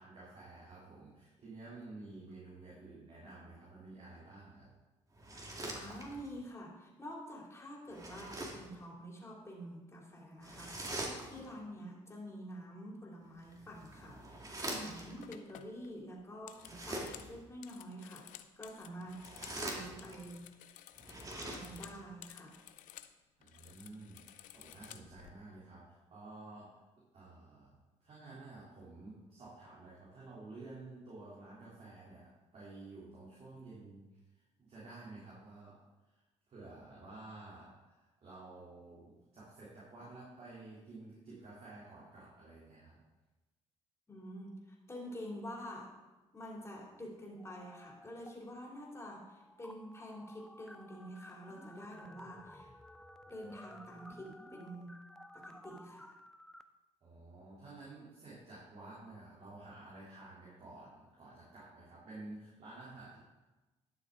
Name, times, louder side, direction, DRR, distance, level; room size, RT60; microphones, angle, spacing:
voice 1, 0.0-4.7 23.4-26.8 27.1-34.0 34.3-42.9 57.0-63.2, right 2 dB, 55° right, -7 dB, 3.3 m, -52 dB
sound 1, 5.1-6.4 7.9-8.7 10.4-11.6 13.4-15.2 16.6-17.4 19.0-20.3 21.0-22.0, right 1 dB, 25° right, 2.2 m, -44 dB
voice 2, 5.7-20.7 21.4-22.6 44.1-45.9 46.3-52.7 53.3-55.0 55.3-56.2, equal, 20° left, -3 dB, 3.0 m, -48 dB
sound 2, 15.2-19.6 19.9-23.1 23.4-25.3, left 13 dB, 80° left, 0.5 m, -55 dB
sound 3, 47.4-48.3 48.6-56.6, left 1 dB, 5° left, 0.5 m, -55 dB
11.5 x 6.6 x 3.8 m, 1.1 s
supercardioid pair, 75°, 13 cm